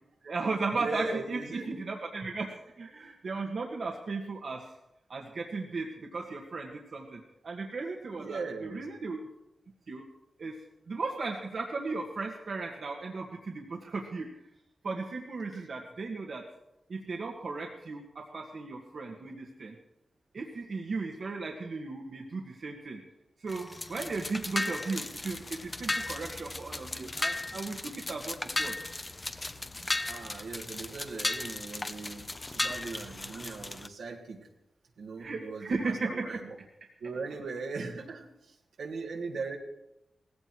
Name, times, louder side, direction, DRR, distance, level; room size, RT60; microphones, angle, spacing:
voice 1, 0.2-4.7 5.1-9.2 9.9-10.0 10.4-10.5 10.9-14.3 14.8-16.4 16.9-19.8 20.3-23.0 23.4-28.8 35.2-36.4, right 3 dB, 70° right, 1 dB, 1.8 m, -36 dB
voice 2, 0.7-1.7 8.2-8.8 15.5-15.7 28.8-28.9 30.1-34.4 35.0-36.5 37.0-39.6, right 4 dB, 90° right, 0 dB, 2.5 m, -39 dB
sound 1, 23.5-33.9, left 2 dB, 30° left, 1.1 m, -36 dB
17.5 x 16.0 x 4.7 m, 0.86 s
cardioid pair, 45°, 0 cm